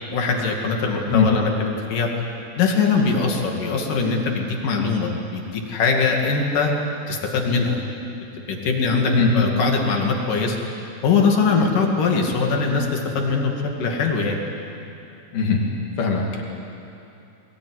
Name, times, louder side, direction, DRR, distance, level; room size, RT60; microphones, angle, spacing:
voice 1, 0.1-2.1 2.6-6.7 7.1-7.8 8.5-10.6 11.0-13.5 13.8-14.4, left 4 dB, 65° left, 1 dB, 3.9 m, -21 dB
voice 2, 16.0-16.4, left 5 dB, 90° left, 0 dB, 4.4 m, -20 dB
21.5 x 20.5 x 9.8 m, 2.8 s
omnidirectional pair, 4.2 m